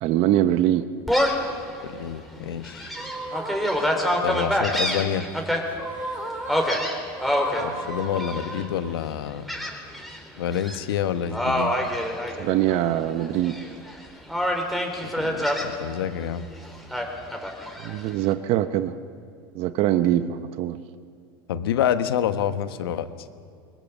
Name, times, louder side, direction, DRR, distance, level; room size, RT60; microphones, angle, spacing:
voice 1, 0.0-0.9 12.4-13.6 17.8-19.0 19.5-20.8, right 12 dB, 55° right, 11 dB, 0.9 m, -23 dB
Gull seagull, 1.1-1.5 2.0-2.1 2.6-5.6 6.5-7.6 8.2-8.6 9.5-10.2 10.5-10.8 11.3-12.9 13.2-13.9 14.3-15.7 16.9-17.9, equal, ahead, 3.7 m, -26 dB
voice 2, 1.8-2.9 4.2-5.3 7.6-9.5 10.4-11.7 15.0-16.5 21.5-23.1, left 9 dB, 90° left, 10 dB, 1.3 m, -27 dB
sound 1, 3.0-4.6 5.7-9.1, right 1 dB, 15° right, 2.9 m, -35 dB
23.5 x 21.0 x 7.1 m, 2.3 s
supercardioid pair, 105°, 12 cm